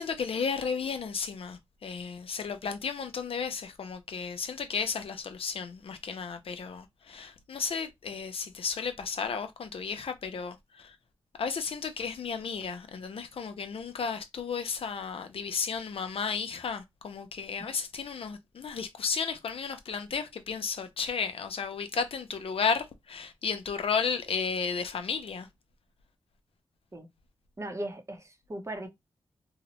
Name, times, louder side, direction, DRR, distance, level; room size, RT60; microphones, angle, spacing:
voice 1, 0.0-10.9 11.4-25.5, left 5 dB, 65° left, 0.5 m, -33 dB
voice 2, 27.6-28.9, right 1 dB, 30° right, 0.7 m, -38 dB
2.8 x 2.0 x 2.8 m
cardioid pair, 75°, 10 cm